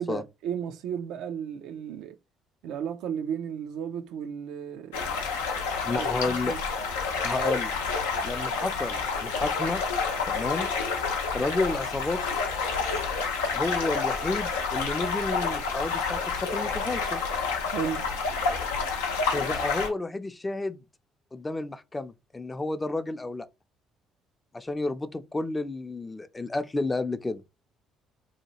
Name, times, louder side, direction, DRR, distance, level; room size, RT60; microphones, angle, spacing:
voice 1, 0.0-2.2 2.6-5.1 5.9-6.6 17.7-18.1, right 8 dB, 70° right, 0.3 m, -34 dB
sound 1, 4.9-19.9, left 5 dB, 85° left, 0.6 m, -29 dB
voice 2, 5.8-6.6 7.2-7.8 8.2-9.8 10.3-10.7 11.3-12.2 13.5-17.2 19.3-20.8 21.3-23.5 24.5-27.4, left 2 dB, 20° left, 0.4 m, -31 dB
2.8 x 2.2 x 2.9 m
hypercardioid pair, 55°, 0 cm